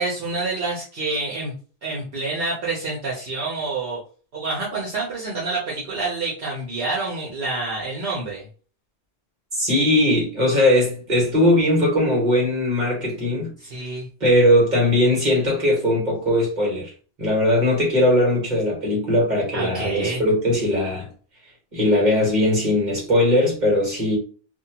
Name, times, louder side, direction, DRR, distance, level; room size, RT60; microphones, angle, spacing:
voice 1, 0.0-1.5 1.8-4.0 4.3-8.5 13.6-14.1 19.5-20.2, right 3 dB, 65° right, 1.0 m, -27 dB
voice 2, 9.5-13.5 14.2-16.9 17.2-21.1 21.7-24.2, left 1 dB, 45° right, 1.4 m, -19 dB
2.7 x 2.2 x 2.8 m
omnidirectional pair, 1.1 m